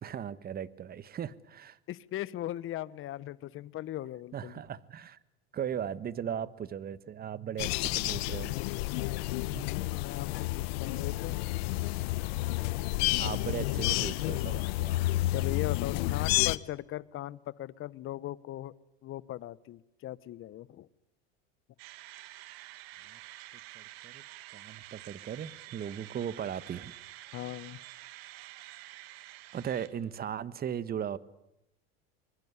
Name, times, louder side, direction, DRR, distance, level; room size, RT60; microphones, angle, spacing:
voice 1, 0.0-1.8 4.3-5.2 5.5-8.6 9.5-9.7 13.2-15.3 23.1-23.2 23.7-24.2 24.5-26.9 29.5-31.2, right 9 dB, 30° right, 17 dB, 1.3 m, -37 dB
voice 2, 1.9-4.6 9.5-11.4 15.3-18.7 19.0-20.9 27.3-27.8, left 14 dB, 40° left, 19 dB, 1.1 m, -39 dB
sound 1, 7.6-16.6, left 19 dB, 70° left, 1.0 m, -30 dB
sound 2, 21.8-30.3, right 16 dB, 70° right, 1.8 m, -49 dB
24.0 x 22.5 x 9.7 m, 0.87 s
supercardioid pair, 110°, 32 cm